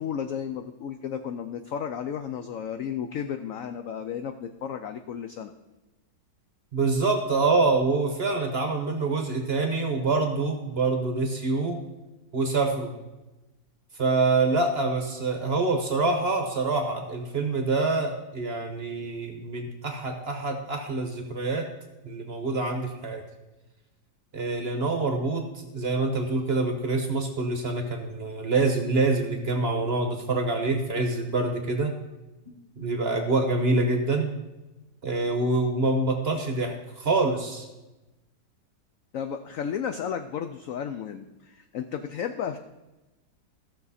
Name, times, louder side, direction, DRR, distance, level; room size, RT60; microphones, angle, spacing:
voice 1, 0.0-5.5 39.1-42.6, left 8 dB, 85° left, 8 dB, 0.7 m, -33 dB
voice 2, 6.7-11.8 12.3-12.9 14.0-21.6 22.0-23.2 24.3-31.9 32.8-34.3 35.0-37.7, right 3 dB, 40° right, 4 dB, 1.0 m, -26 dB
14.5 x 6.4 x 4.1 m, 1.0 s
omnidirectional pair, 2.0 m